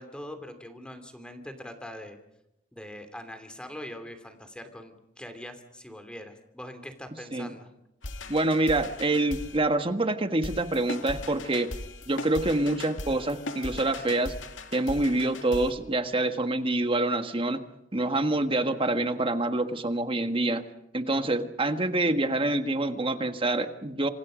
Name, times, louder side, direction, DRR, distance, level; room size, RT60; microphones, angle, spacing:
voice 1, 0.0-2.2 2.7-7.7, left 1 dB, 5° left, 7 dB, 2.7 m, -42 dB
sound 1, 8.0-9.6 10.4-15.7, left 2 dB, 85° left, 2.2 m, -39 dB
voice 2, 8.3-11.7 12.1-14.3 14.7-17.6 17.9-20.6 20.9-24.1, right 2 dB, 30° right, 8 dB, 1.5 m, -26 dB
27.5 x 27.0 x 5.1 m, 0.84 s
head